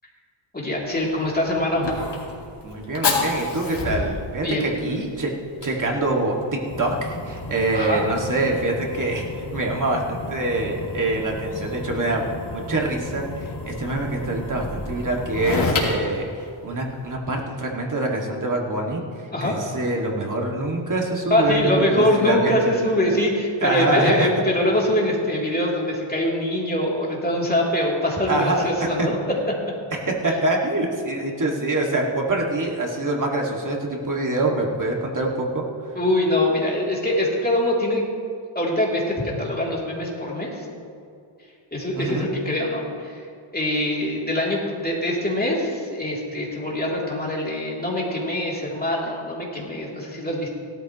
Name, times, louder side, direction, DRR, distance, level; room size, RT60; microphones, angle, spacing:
voice 1, 0.5-1.9 4.4-4.8 7.7-8.1 19.3-19.5 21.3-29.4 35.9-38.0 38.5-40.6 41.7-43.2 43.5-50.5, left 1 dB, 20° left, -4 dB, 3.2 m, -23 dB
Fire, 0.9-17.1, left 3 dB, 55° left, 2.6 m, -31 dB
voice 2, 2.6-5.3 5.6-9.3 9.5-12.3 12.5-19.0 19.4-22.7 23.6-24.3 28.3-28.7 29.0-29.1 29.9-35.6 41.9-42.3, right 2 dB, 40° right, -1 dB, 2.3 m, -25 dB
17.5 x 13.0 x 3.1 m, 2.4 s
cardioid pair, 95°, 48 cm